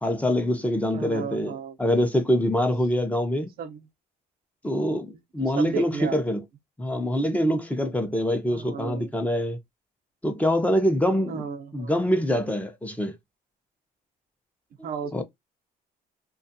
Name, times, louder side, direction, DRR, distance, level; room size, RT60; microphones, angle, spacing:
voice 1, 0.0-3.5 4.6-6.4 6.8-9.6 10.2-11.4 11.7-13.2 15.1-15.2, equal, 10° left, 0.6 m, -25 dB
voice 2, 0.9-1.8 3.6-3.9 5.4-6.2 8.5-9.1 11.3-11.9 14.8-15.2, right 6 dB, 60° right, 0.6 m, -34 dB
2.5 x 2.3 x 2.6 m
cardioid pair, 110°, 17 cm